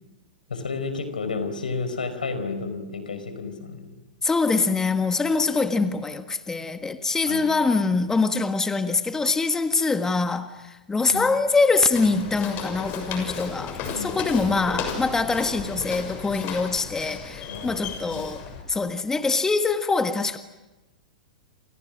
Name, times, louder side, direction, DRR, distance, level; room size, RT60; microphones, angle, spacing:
voice 1, 0.5-4.0 7.3-7.6 11.1-11.3 13.8-14.1 14.4-14.6 17.5-18.2, left 4 dB, 85° left, 4.8 m, -32 dB
voice 2, 4.2-18.4 18.7-20.4, left 4 dB, 10° left, 1.6 m, -24 dB
Walk footsteps, 11.9-18.6, left 6 dB, 40° left, 6.7 m, -34 dB
29.0 x 27.5 x 6.4 m
hypercardioid pair, 110°, 5 cm